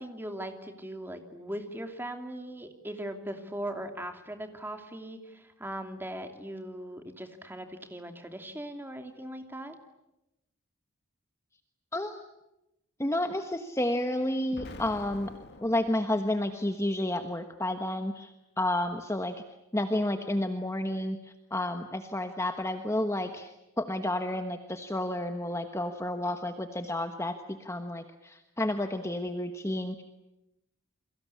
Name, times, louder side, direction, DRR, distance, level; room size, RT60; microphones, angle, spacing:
voice 1, 0.0-9.8, right 1 dB, 10° right, 6 dB, 2.6 m, -39 dB
voice 2, 13.0-15.3 15.6-19.3 19.7-30.0, left 1 dB, 15° left, 6 dB, 1.2 m, -31 dB
Explosion, 14.5-16.6, left 2 dB, 50° left, 2.2 m, -46 dB
29.5 x 23.0 x 8.5 m, 0.94 s
head